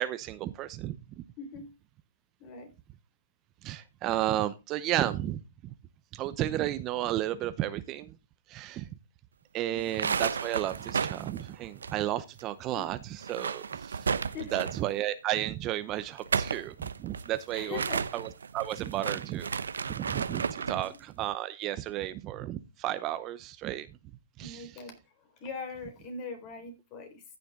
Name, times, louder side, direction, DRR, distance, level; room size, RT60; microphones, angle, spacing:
voice 1, 0.0-1.2 3.6-5.7 6.1-8.1 8.5-8.9 9.5-14.2 14.5-17.8 18.1-19.5 19.9-23.9 24.4-24.8, right 13 dB, 25° right, 0.7 m, -33 dB
voice 2, 1.4-1.7 2.4-2.7 9.6-9.9 12.7-12.9 14.2-14.6 17.5-18.0 20.6-20.9 24.4-27.2, left 4 dB, 35° left, 4.3 m, -41 dB
sound 1, 9.8-12.4 12.7-12.8 13.1-14.9 16.0-20.9, right 6 dB, 90° right, 0.8 m, -33 dB
15.0 x 6.8 x 3.7 m
hypercardioid pair, 145°, 0 cm